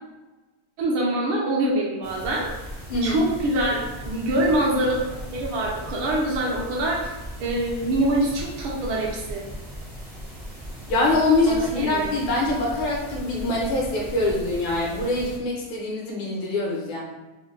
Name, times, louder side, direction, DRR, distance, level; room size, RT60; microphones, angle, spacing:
voice 1, 0.8-2.5 3.0-7.1 7.4-9.4 11.4-12.1, right 1 dB, 75° right, -3 dB, 1.6 m, -24 dB
sound 1, 2.0-15.4, equal, 35° right, 0.3 m, -37 dB
voice 2, 2.9-3.3 10.9-17.0, left 2 dB, 75° left, -3 dB, 1.6 m, -24 dB
4.1 x 2.1 x 3.1 m, 1.1 s
omnidirectional pair, 2.4 m